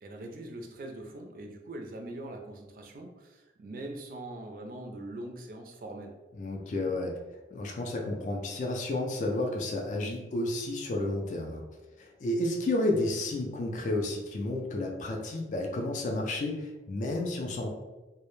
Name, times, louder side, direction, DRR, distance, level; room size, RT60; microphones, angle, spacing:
voice 1, 0.0-6.1, right 1 dB, 50° right, 3 dB, 0.3 m, -42 dB
voice 2, 6.4-7.1 7.5-11.6 12.0-17.7, left 2 dB, 45° left, 1 dB, 0.3 m, -31 dB
2.1 x 2.0 x 3.0 m, 1.1 s
head